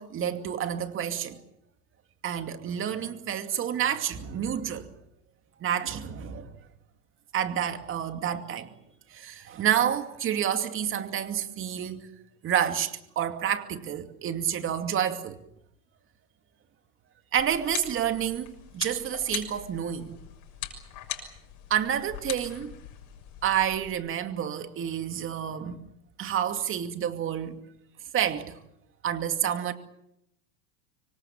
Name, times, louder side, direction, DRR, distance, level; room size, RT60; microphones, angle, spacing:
voice 1, 0.0-1.4 2.2-4.9 5.6-6.5 7.3-8.7 9.1-12.1 12.4-15.4 17.3-20.2 21.7-22.7 23.4-25.8 26.2-27.6 28.1-28.6 29.0-29.7, right 9 dB, 30° right, 2.5 m, -29 dB
sound 1, 17.4-23.9, left 11 dB, 40° left, 6.6 m, -41 dB
26.0 x 24.0 x 7.3 m
hypercardioid pair, 125°, 45 cm